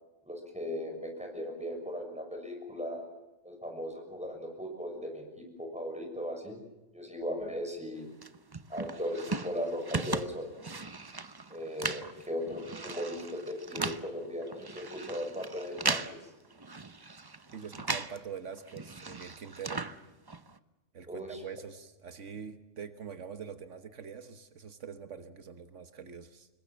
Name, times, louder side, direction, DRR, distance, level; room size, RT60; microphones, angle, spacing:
voice 1, 0.3-3.1 3.4-6.6 6.9-8.1 8.7-10.5 11.5-16.0 21.1-21.4, equal, 5° right, 2 dB, 6.3 m, -37 dB
sound 1, 8.2-18.2 18.5-20.6, right 3 dB, 20° right, 0.8 m, -38 dB
voice 2, 17.5-19.9 20.9-26.5, right 7 dB, 80° right, 9 dB, 1.5 m, -44 dB
26.0 x 22.0 x 7.5 m, 1.0 s
omnidirectional pair, 1.2 m